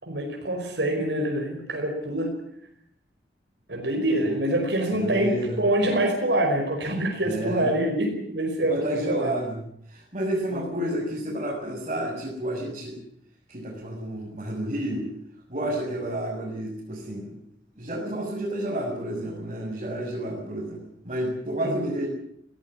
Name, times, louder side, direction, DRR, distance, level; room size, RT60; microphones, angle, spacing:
voice 1, 0.0-2.3 3.7-9.3 10.5-10.6 21.6-21.8, right 1 dB, 75° right, 1 dB, 5.2 m, -25 dB
voice 2, 4.9-5.6 7.2-7.7 8.7-9.6 9.9-13.0 13.5-15.0 15.5-17.4 17.8-22.1, right 1 dB, 40° right, -4 dB, 7.0 m, -30 dB
19.0 x 18.5 x 9.9 m, 0.71 s
head